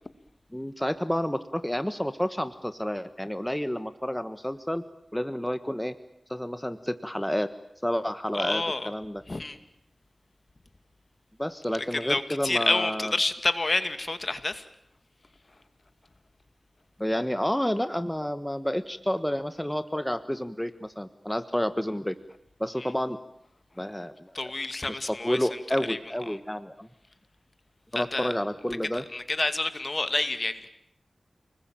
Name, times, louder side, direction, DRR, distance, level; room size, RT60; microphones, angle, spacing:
voice 1, 0.5-4.8 5.1-5.9 6.3-7.5 7.8-9.2 11.4-13.1 17.0-22.1 22.6-23.2 23.8-24.3 24.9-26.9 27.9-29.0, equal, 10° left, 11 dB, 1.4 m, -30 dB
voice 2, 8.3-8.9 9.3-9.6 11.9-14.6 22.8-22.9 24.3-25.6 25.9-26.0 26.3-26.4 27.9-28.3 29.1-30.7, left 2 dB, 45° left, 10 dB, 2.3 m, -28 dB
29.0 x 20.5 x 9.1 m, 0.75 s
wide cardioid pair, 60°, 0 cm